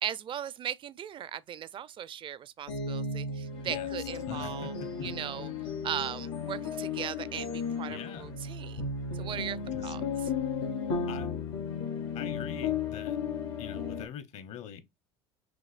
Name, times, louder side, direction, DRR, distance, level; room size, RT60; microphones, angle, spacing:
voice 1, 0.0-4.7 5.0-8.9 9.1-10.0, right 10 dB, 40° right, 0.4 m, -38 dB
sound 1, 2.7-14.1, left 5 dB, 90° left, 2.2 m, -34 dB
voice 2, 4.3-5.1 7.9-8.3 9.7-9.9 11.1-11.3 12.1-13.2 13.6-14.8, left 9 dB, 55° left, 1.0 m, -43 dB
6.3 x 2.6 x 2.5 m
hypercardioid pair, 80°, 14 cm